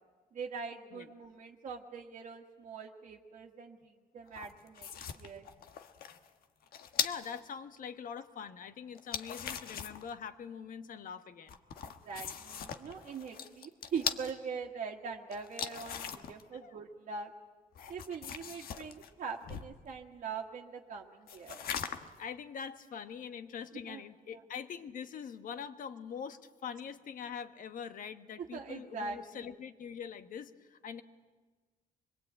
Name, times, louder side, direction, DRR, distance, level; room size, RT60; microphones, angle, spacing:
voice 1, 0.3-4.9 5.1-5.5 11.8-17.3 17.9-21.6 23.9-24.0 24.3-24.4 28.5-29.5, right 5 dB, 60° right, -3 dB, 1.6 m, -42 dB
sound 1, 4.3-7.4 9.0-10.1 11.5-14.3 15.3-16.4 17.8-19.8 21.3-22.2, left 8 dB, 90° left, 1.3 m, -40 dB
voice 2, 7.0-11.6 16.6-16.8 17.8-17.9 22.2-31.0, left 7 dB, 65° left, 10 dB, 1.3 m, -43 dB
25.0 x 22.0 x 8.8 m, 1.4 s
cardioid pair, 150°, 15 cm